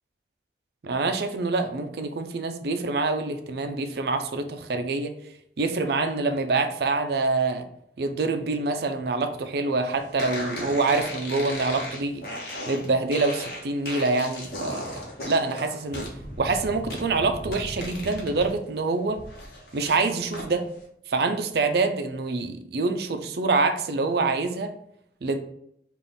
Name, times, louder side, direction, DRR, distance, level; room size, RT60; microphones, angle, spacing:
voice 1, 0.8-5.1 5.6-7.7 8.0-12.2 12.7-14.9 15.2-16.1 16.4-19.2 19.7-20.6 21.1-24.7 25.2-25.4, right 3 dB, 60° right, 7 dB, 0.4 m, -26 dB
sound 1, 10.2-18.5 18.8-20.5, left 1 dB, 55° left, 1.0 m, -36 dB
3.5 x 2.4 x 3.9 m, 0.72 s
head